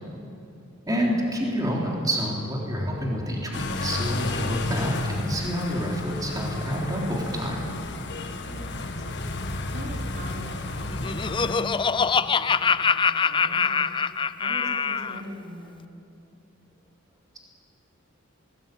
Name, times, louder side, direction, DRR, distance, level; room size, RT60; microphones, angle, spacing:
voice 1, 0.0-0.4 8.4-9.2 9.7-13.9 14.4-15.8, equal, 55° right, -1 dB, 3.6 m, -41 dB
voice 2, 0.9-7.7, equal, 20° right, -2 dB, 3.5 m, -28 dB
sound 1, 3.5-11.6, left 2 dB, 60° left, 1.6 m, -32 dB
Laughter, 10.7-15.2, left 5 dB, 25° left, 0.4 m, -24 dB
21.0 x 20.0 x 9.1 m, 2.7 s
head